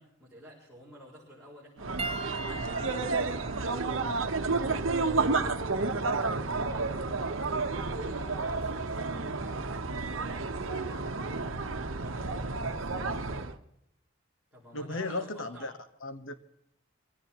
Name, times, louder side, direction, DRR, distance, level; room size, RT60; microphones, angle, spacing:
voice 1, 0.0-4.1 4.5-7.2 7.6-9.6 10.1-13.5 14.5-15.7, equal, ahead, -9 dB, 4.9 m, -51 dB
sound 1, 1.8-13.6, right 3 dB, 70° right, 1.0 m, -31 dB
Piano, 2.0-6.7 7.6-7.8 9.7-9.8, right 3 dB, 30° right, 0.9 m, -42 dB
voice 2, 14.7-15.7 16.0-16.3, left 2 dB, 70° left, 9 dB, 1.2 m, -35 dB
24.0 x 16.5 x 3.0 m, 0.77 s
head